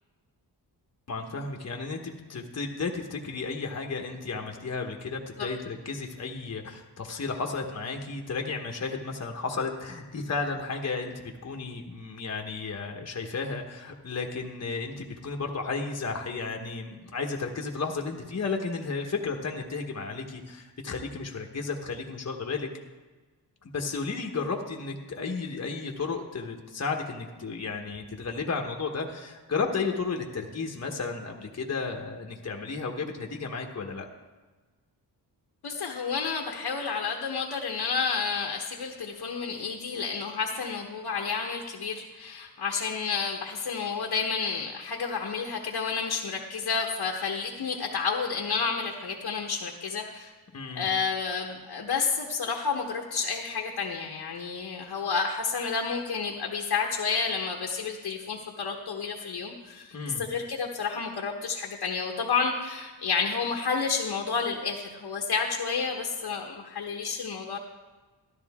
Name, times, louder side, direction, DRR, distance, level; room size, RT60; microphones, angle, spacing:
voice 1, 1.1-22.7 23.6-34.1 50.5-50.9 59.9-60.2, left 4 dB, 40° left, 2 dB, 1.3 m, -33 dB
voice 2, 35.6-50.3 50.7-67.6, left 5 dB, 75° left, 1 dB, 1.2 m, -30 dB
13.5 x 12.0 x 3.6 m, 1.3 s
wide cardioid pair, 100°, 40 cm